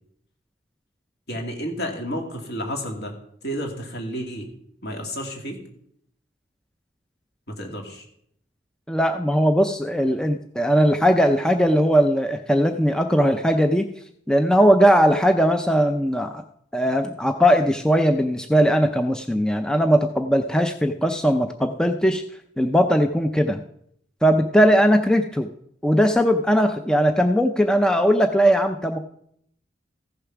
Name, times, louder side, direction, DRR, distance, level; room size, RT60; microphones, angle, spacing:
voice 1, 1.3-3.1 3.4-4.5 4.8-5.6 7.6-8.0, equal, 60° left, 2 dB, 2.4 m, -31 dB
voice 2, 8.9-13.9 14.3-16.4 16.7-22.2 22.6-23.6 24.2-25.5 25.8-29.0, equal, 5° left, 6 dB, 0.4 m, -19 dB
15.0 x 6.8 x 5.9 m, 0.71 s
head